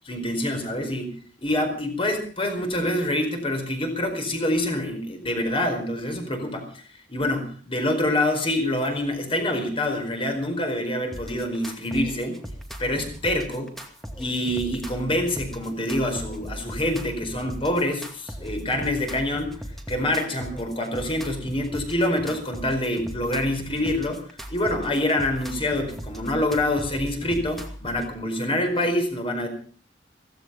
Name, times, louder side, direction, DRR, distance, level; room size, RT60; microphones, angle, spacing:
voice 1, 0.1-1.1 1.4-6.8 7.1-12.4 12.8-13.7 14.2-19.5 19.9-24.2 24.5-29.5, left 1 dB, 30° left, 5 dB, 4.7 m, -26 dB
sound 1, 11.1-28.1, equal, ahead, 2.3 m, -38 dB
17.0 x 15.5 x 5.5 m, 0.43 s
head